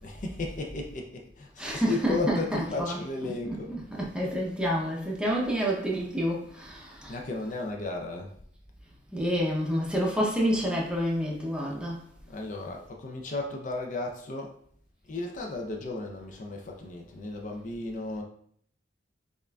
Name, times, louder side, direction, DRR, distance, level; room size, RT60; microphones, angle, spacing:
voice 1, 0.0-3.8 7.1-8.3 12.3-14.6 15.0-18.2, left 3 dB, 45° left, 0.4 m, -34 dB
voice 2, 1.6-7.2 9.1-12.0, equal, 5° right, 0.6 m, -29 dB
5.3 x 2.4 x 2.3 m
head